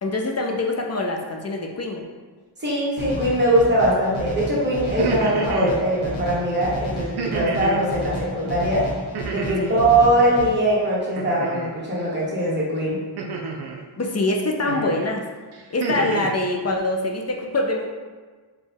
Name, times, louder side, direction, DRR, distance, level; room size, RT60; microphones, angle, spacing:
voice 1, 0.0-2.0 9.6-9.8 14.0-15.2 15.7-17.9, left 2 dB, 35° left, 1 dB, 0.4 m, -24 dB
voice 2, 2.6-8.8 9.3-13.0, right 1 dB, 25° right, -7 dB, 1.1 m, -21 dB
sound 1, 3.0-10.4, left 1 dB, 75° left, 0.8 m, -32 dB
sound 2, 4.8-5.7 7.2-7.9 9.1-9.8 11.2-11.7 13.2-13.8 14.7-15.0 15.5-16.4, right 4 dB, 60° right, 0.5 m, -29 dB
4.2 x 2.2 x 3.4 m, 1.4 s
wide cardioid pair, 100°, 47 cm